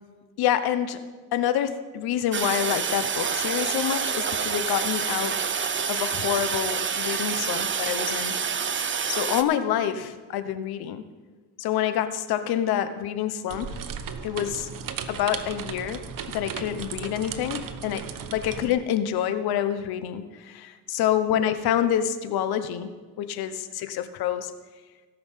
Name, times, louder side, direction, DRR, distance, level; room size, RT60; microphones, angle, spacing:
voice 1, 0.4-1.0 1.3-5.5 5.9-8.3 9.1-11.0 11.6-13.8 14.2-14.7 15.1-16.0 16.3-22.9 23.2-24.5, left 10 dB, 90° left, 11 dB, 1.0 m, -27 dB
Toilet flush, 2.3-9.4, right 6 dB, 30° right, 0.7 m, -27 dB
sound 1, 13.5-18.7, right 7 dB, 60° right, 1.0 m, -36 dB
18.0 x 6.1 x 5.6 m, 1.4 s
cardioid pair, 85°, 37 cm